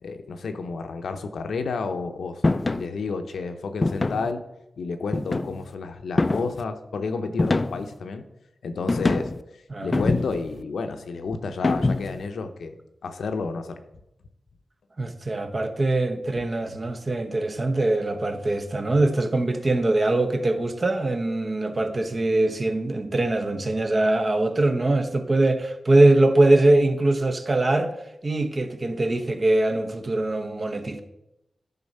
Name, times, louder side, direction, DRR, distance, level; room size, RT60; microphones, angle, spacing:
voice 1, 0.0-4.4 4.8-8.2 8.6-9.3 9.8-12.8 13.0-13.8 16.3-16.4, left 4 dB, 85° left, 0.7 m, -31 dB
sound 1, 2.4-2.9 3.8-4.3 5.1-5.7 6.2-6.6 7.4-8.0 8.9-9.4 9.9-10.5 11.6-12.2, left 2 dB, 35° left, 0.4 m, -24 dB
voice 2, 15.0-27.9 28.2-31.0, right 2 dB, 40° right, 0.9 m, -22 dB
10.5 x 4.0 x 5.5 m
cardioid pair, 70°, 0 cm